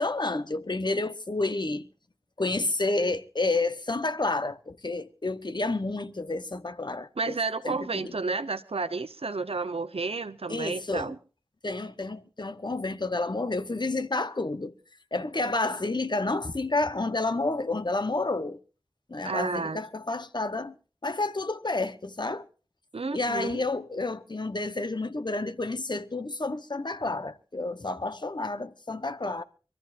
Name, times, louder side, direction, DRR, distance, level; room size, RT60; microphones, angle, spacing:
voice 1, 0.0-1.9 2.4-7.4 7.6-8.1 10.5-11.1 11.6-14.7 15.1-18.6 19.1-20.8 21.0-22.5 23.1-29.4, left 2 dB, 50° left, 1.1 m, -30 dB
voice 2, 7.2-11.2 19.2-19.8 22.9-23.6, right 3 dB, 90° right, 0.8 m, -31 dB
26.0 x 13.5 x 2.6 m
wide cardioid pair, 50°, 10 cm